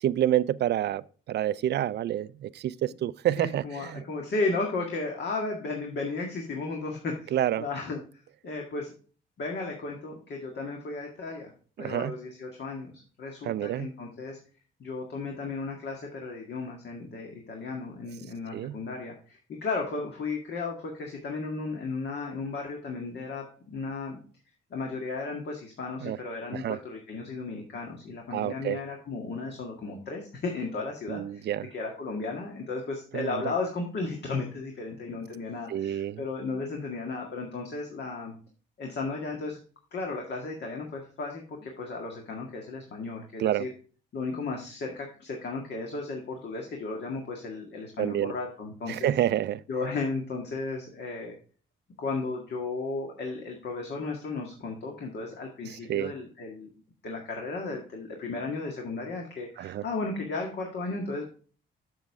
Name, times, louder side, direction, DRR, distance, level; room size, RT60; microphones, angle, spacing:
voice 1, 0.0-1.0 1.3-4.0 7.3-7.6 11.8-12.1 13.4-13.9 18.5-18.8 26.0-26.2 26.5-26.8 28.3-28.8 31.1-31.7 33.1-33.4 35.7-36.2 43.4-43.7 48.0-48.3 48.9-49.6 55.9-56.1 59.6-59.8, right 12 dB, 60° right, 0.4 m, -28 dB
voice 2, 3.4-8.0 8.4-8.9 9.4-11.5 11.8-12.9 13.2-14.4 14.8-24.2 24.7-38.3 38.8-39.6 39.9-43.7 44.1-49.1 49.7-51.3 52.0-56.7 57.0-61.3, left 3 dB, 60° left, 1.8 m, -34 dB
7.5 x 7.1 x 3.5 m
cardioid pair, 90°, 20 cm